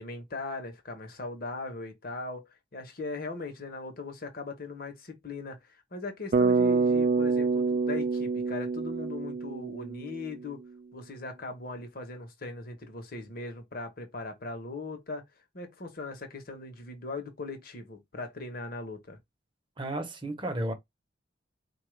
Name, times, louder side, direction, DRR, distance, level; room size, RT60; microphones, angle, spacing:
voice 1, 0.0-10.6 10.9-15.2 15.5-19.2, left 3 dB, 50° left, 0.9 m, -39 dB
Bass guitar, 6.3-10.4, right 4 dB, 40° right, 0.3 m, -27 dB
voice 2, 19.8-20.7, right 1 dB, 25° right, 0.8 m, -33 dB
4.2 x 2.4 x 3.1 m
head